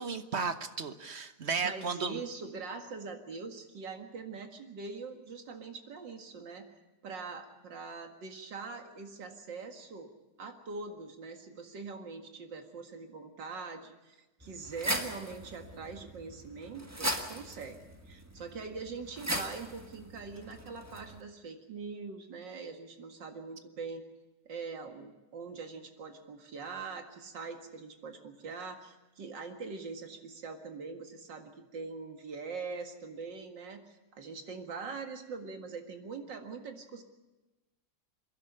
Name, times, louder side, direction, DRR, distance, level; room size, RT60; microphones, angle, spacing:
voice 1, 0.0-2.2, right 5 dB, 45° right, 9 dB, 1.2 m, -34 dB
voice 2, 1.6-6.7 7.0-10.1 10.4-17.8 18.1-24.0 24.5-37.0, right 4 dB, 85° right, 5 dB, 2.6 m, -43 dB
sound 1, 14.4-21.2, right 1 dB, 10° right, 1.3 m, -39 dB
27.5 x 11.0 x 9.9 m, 1.1 s
omnidirectional pair, 1.9 m